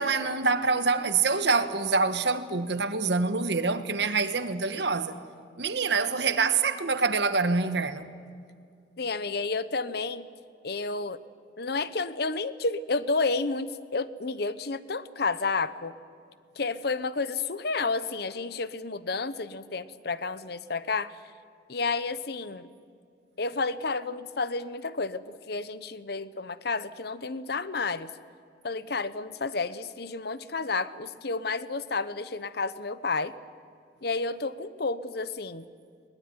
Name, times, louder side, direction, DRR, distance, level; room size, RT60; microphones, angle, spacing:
voice 1, 0.0-5.2 5.6-8.0, right 4 dB, 65° right, 1.3 m, -26 dB
voice 2, 9.0-10.3 10.6-11.2 11.6-15.9 16.6-21.1 21.7-22.7 23.4-28.1 28.6-33.3 34.0-35.7, left 3 dB, 55° left, 0.9 m, -31 dB
22.0 x 20.0 x 9.7 m
head